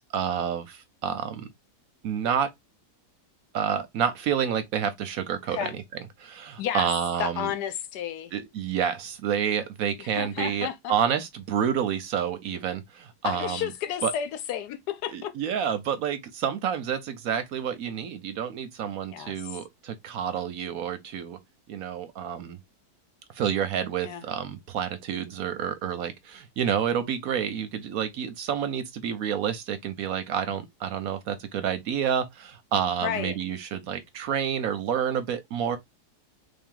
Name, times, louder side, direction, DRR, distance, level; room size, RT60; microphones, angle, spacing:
voice 1, 0.0-1.5 2.0-2.5 3.5-5.8 6.2-7.5 8.3-13.7 14.0-14.1 15.1-21.4 21.7-22.6 23.3-35.8, right 8 dB, 65° right, 0.9 m, -29 dB
voice 2, 7.2-8.3 10.0-10.9 13.2-15.3 19.1-19.3 24.0-24.2 33.0-33.4, left 9 dB, 80° left, 1.2 m, -31 dB
3.6 x 2.7 x 3.6 m
omnidirectional pair, 1.8 m